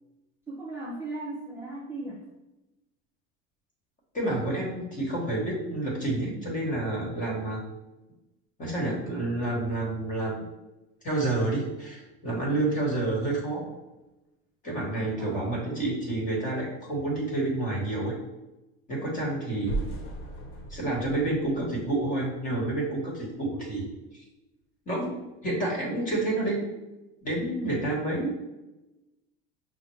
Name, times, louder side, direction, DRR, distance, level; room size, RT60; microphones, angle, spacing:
voice 1, 0.5-2.2 15.2-15.6, right 2 dB, 10° right, -4 dB, 0.4 m, -37 dB
voice 2, 4.1-7.6 8.6-10.4 11.0-13.7 14.6-18.2 18.9-19.7 20.7-23.9 24.9-25.2 25.4-26.7 27.2-28.4, right 2 dB, 25° left, -2 dB, 1.3 m, -29 dB
sound 1, 19.7-22.7, right 2 dB, 65° left, 0.9 m, -37 dB
5.7 x 2.0 x 3.1 m, 1.0 s
cardioid pair, 135°, 29 cm